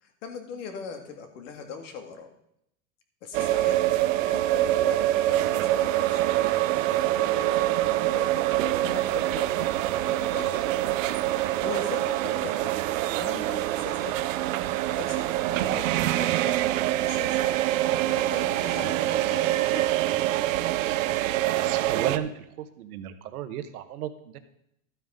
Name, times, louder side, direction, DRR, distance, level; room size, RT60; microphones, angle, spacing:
voice 1, 0.0-2.3 3.2-3.8 4.2-6.3 6.9-10.7 11.4-12.7 13.2-14.2 14.8-16.6 17.0-17.5 17.9-19.9, left 5 dB, 50° left, 5 dB, 2.1 m, -40 dB
sound 1, 3.3-22.2, right 14 dB, 55° right, 0.7 m, -25 dB
voice 2, 21.5-24.4, right 10 dB, 75° right, 10 dB, 1.3 m, -34 dB
13.0 x 9.4 x 3.8 m, 0.76 s
supercardioid pair, 165°, 46 cm